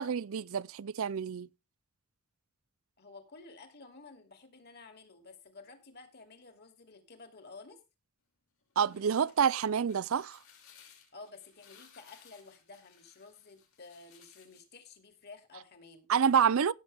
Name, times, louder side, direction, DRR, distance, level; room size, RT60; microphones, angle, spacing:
voice 1, 0.0-1.5 8.8-10.4 16.1-16.7, right 7 dB, 70° right, 0.5 m, -28 dB
voice 2, 3.0-7.8 11.1-16.1, left 3 dB, 50° left, 2.7 m, -52 dB
sound 1, 8.6-14.8, left 8 dB, 75° left, 5.1 m, -60 dB
17.0 x 7.6 x 3.4 m
head